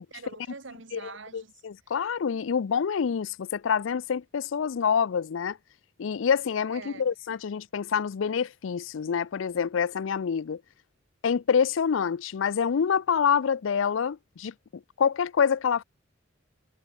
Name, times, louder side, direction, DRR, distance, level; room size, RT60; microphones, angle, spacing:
voice 1, 0.1-1.9 6.7-7.1, right 4 dB, 65° right, 1.3 m, -45 dB
voice 2, 1.3-5.6 6.0-10.6 11.2-14.5 15.0-15.8, left 7 dB, 70° left, 0.4 m, -26 dB
head